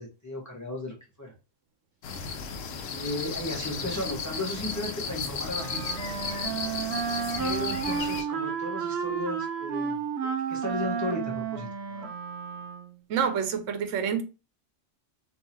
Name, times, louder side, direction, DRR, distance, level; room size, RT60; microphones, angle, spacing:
voice 1, 0.0-1.3 2.9-5.8 7.4-12.1, left 1 dB, 15° left, 1.0 m, -35 dB
sound 1, 2.0-8.2, left 5 dB, 85° left, 1.0 m, -34 dB
Wind instrument woodwind instrument, 5.5-13.0, right 7 dB, 65° right, 0.8 m, -32 dB
voice 2, 13.1-14.2, right 7 dB, 85° right, 1.0 m, -27 dB
3.6 x 2.9 x 2.8 m
omnidirectional pair, 1.3 m